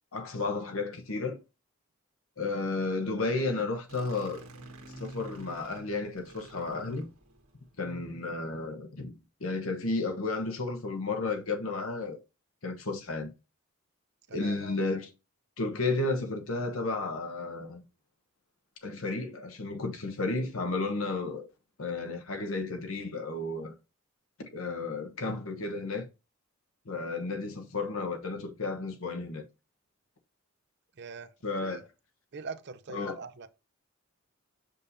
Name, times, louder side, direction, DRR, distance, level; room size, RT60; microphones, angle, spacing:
voice 1, 0.1-1.4 2.4-4.4 5.0-7.1 7.8-12.2 12.6-13.3 14.3-15.1 15.6-17.8 18.8-21.5 21.8-23.7 24.4-26.1 26.8-29.4 31.4-31.9 32.9-33.2, left 3 dB, 75° left, 1.1 m, -33 dB
sound 1, 3.9-7.8, right 1 dB, 90° right, 1.4 m, -48 dB
voice 2, 14.3-14.8 31.0-31.3 31.6-31.8 32.3-33.5, right 4 dB, 50° right, 0.6 m, -43 dB
6.7 x 5.2 x 2.7 m
head